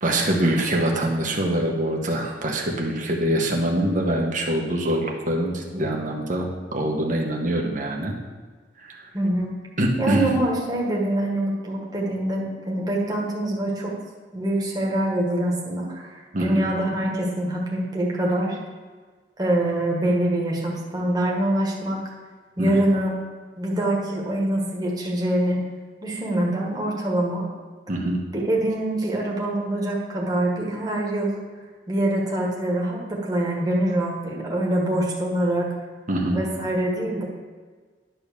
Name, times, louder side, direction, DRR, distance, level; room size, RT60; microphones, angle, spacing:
voice 1, 0.0-8.1 8.8-9.1 9.8-10.3 16.3-16.7 22.6-22.7 27.9-28.2 36.1-36.4, right 1 dB, 45° right, 0 dB, 1.3 m, -24 dB
voice 2, 9.1-9.5 10.0-13.9 14.3-18.6 19.4-22.0 22.6-23.1 23.6-25.6 26.0-27.4 28.3-31.3 31.9-35.7 36.3-37.2, right 1 dB, 20° right, -4 dB, 1.7 m, -24 dB
10.5 x 3.9 x 6.8 m, 1.5 s
head